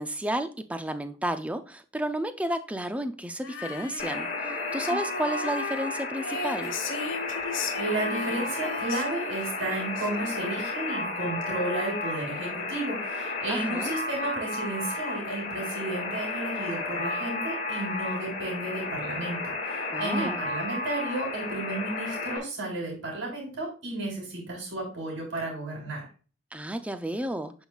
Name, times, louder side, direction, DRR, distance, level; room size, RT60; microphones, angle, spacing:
voice 1, 0.0-6.8 13.5-13.9 19.9-20.4 26.5-27.5, right 1 dB, 5° right, 0.5 m, -32 dB
Female singing, 3.4-10.8, left 3 dB, 70° left, 1.2 m, -37 dB
Alarm, 4.0-22.4, left 3 dB, 35° left, 2.2 m, -33 dB
voice 2, 7.8-26.0, right 2 dB, 65° right, 3.7 m, -33 dB
9.3 x 5.5 x 2.4 m
head